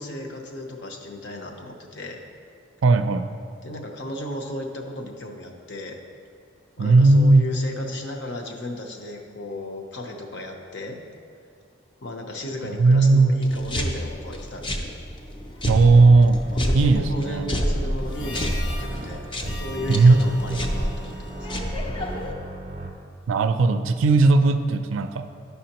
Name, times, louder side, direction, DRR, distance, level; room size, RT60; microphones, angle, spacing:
voice 1, 0.0-2.2 3.6-6.0 6.8-11.0 12.0-14.9 16.5-21.5, left 1 dB, 55° left, 2 dB, 0.7 m, -35 dB
voice 2, 2.8-3.3 6.8-7.5 12.6-13.3 15.7-16.4 16.7-17.5 19.9-20.2 20.5-20.6 23.3-25.3, right 3 dB, 70° right, 9 dB, 0.4 m, -17 dB
sound 1, 13.4-22.3, equal, 25° left, 0.4 m, -29 dB
sound 2, 15.9-22.9, right 1 dB, 35° right, 0.7 m, -36 dB
Harmonica, 18.0-22.6, left 1 dB, 90° left, 1.6 m, -43 dB
10.0 x 5.6 x 2.9 m, 2.4 s
head